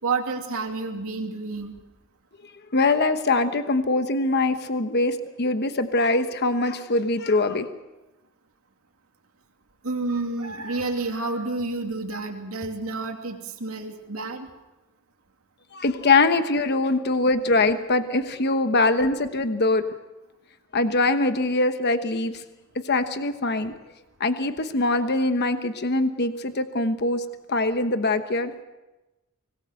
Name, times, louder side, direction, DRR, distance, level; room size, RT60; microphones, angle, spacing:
voice 1, 0.0-1.7 9.8-14.5 18.7-18.8, right 3 dB, 80° right, 2 dB, 2.7 m, -29 dB
voice 2, 2.7-7.7 15.7-19.9 20.7-22.4 22.8-23.7 24.2-28.5, left 2 dB, 50° left, 9 dB, 1.1 m, -23 dB
25.0 x 19.5 x 6.6 m, 1.0 s
head